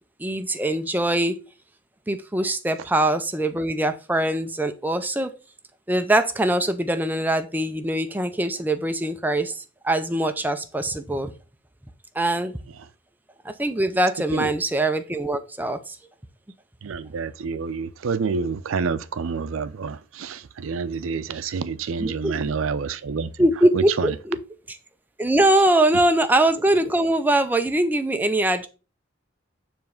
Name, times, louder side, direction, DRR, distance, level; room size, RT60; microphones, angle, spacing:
voice 1, 0.2-1.4 2.1-5.3 5.9-11.3 12.1-12.5 13.4-16.0 22.0-22.4 23.4-24.4 24.7-24.8 25.2-28.7, right 1 dB, 10° right, 0.4 m, -22 dB
voice 2, 16.8-23.3 23.7-24.1, right 5 dB, 90° right, 0.5 m, -28 dB
7.1 x 3.1 x 5.0 m
head